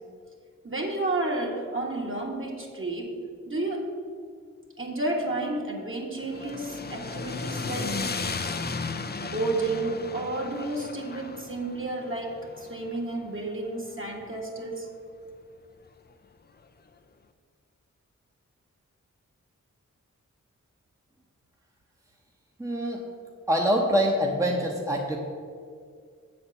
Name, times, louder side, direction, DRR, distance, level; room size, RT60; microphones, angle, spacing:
voice 1, 0.6-3.2 3.4-3.9 4.8-8.0 9.2-14.9, right 2 dB, 40° right, -1 dB, 1.7 m, -31 dB
sound 1, 6.2-14.4, left 4 dB, 30° left, 0.5 m, -35 dB
voice 2, 22.6-23.0 23.5-25.2, equal, 10° right, -1 dB, 1.0 m, -25 dB
7.6 x 4.3 x 6.9 m, 2.2 s
cardioid pair, 45°, 32 cm